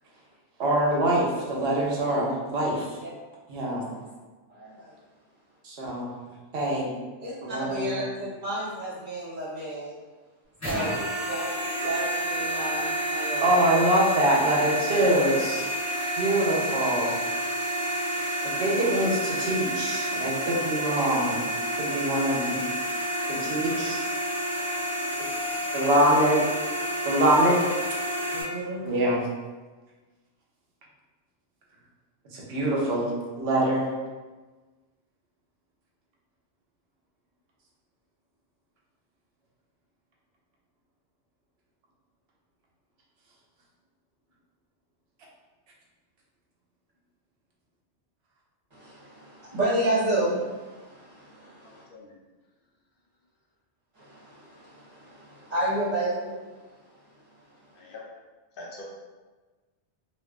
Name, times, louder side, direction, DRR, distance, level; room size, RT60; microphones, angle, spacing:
voice 1, 0.6-2.9 3.5-3.8 5.6-6.1 6.5-6.9 7.4-8.0 13.4-15.6 16.1-17.1 18.4-21.4 21.8-22.6 23.3-24.0 25.7-26.4 27.0-27.6 28.8-29.2 32.3-33.9, right 1 dB, 70° right, -3 dB, 0.9 m, -24 dB
voice 2, 4.5-4.9 7.2-10.0 10.6-11.5 11.8-13.7 27.3-27.4 28.3-28.9 48.7-51.8 54.0-56.4, right 1 dB, 40° right, -9 dB, 1.0 m, -31 dB
sound 1, 10.6-28.4, right 1 dB, 15° left, 0.8 m, -29 dB
voice 3, 51.6-52.1 57.8-58.0 58.5-58.8, left 2 dB, 60° left, -3 dB, 0.7 m, -44 dB
2.5 x 2.3 x 2.2 m, 1.3 s
omnidirectional pair, 1.1 m